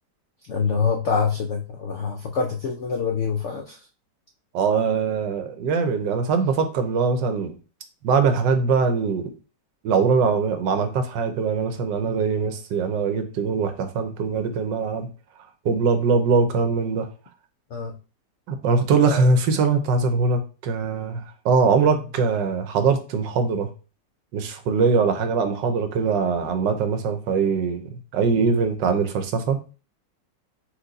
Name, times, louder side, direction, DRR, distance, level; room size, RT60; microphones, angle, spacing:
voice 1, 0.5-3.8 12.0-12.2 17.7-18.0 19.1-19.3 28.4-28.6, left 5 dB, 75° left, 3 dB, 0.6 m, -26 dB
voice 2, 4.5-7.6 8.0-9.3 9.8-15.1 15.6-17.1 18.5-23.7 24.3-29.6, right 5 dB, 85° right, 8 dB, 1.4 m, -22 dB
4.5 x 2.6 x 3.9 m, 0.34 s
omnidirectional pair, 1.9 m